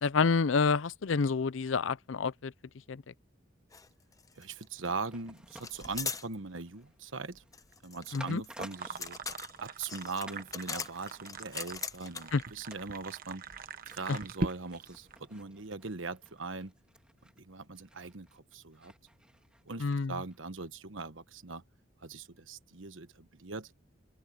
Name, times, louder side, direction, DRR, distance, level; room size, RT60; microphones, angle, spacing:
voice 1, 0.0-2.5 2.9-3.1 8.1-8.4 12.3-12.4 14.1-14.2 19.8-20.2, left 4 dB, 75° left, 0.5 m, -28 dB
sound 1, 3.7-3.9 4.1-4.9 5.6-6.3 7.5-12.4, left 5 dB, 20° left, 0.8 m, -40 dB
voice 2, 4.3-7.4 7.8-9.2 9.6-13.4 13.9-16.7 17.4-18.9 19.6-21.6 22.0-23.7, right 4 dB, 80° right, 1.2 m, -40 dB
sound 2, 4.8-9.9 10.3-10.5 10.9-20.0 20.3-20.4, right 1 dB, 5° right, 2.7 m, -54 dB
Virtiendo el agua caliente en un termo para el té, 8.7-15.2, right 3 dB, 50° right, 1.2 m, -42 dB
open air
head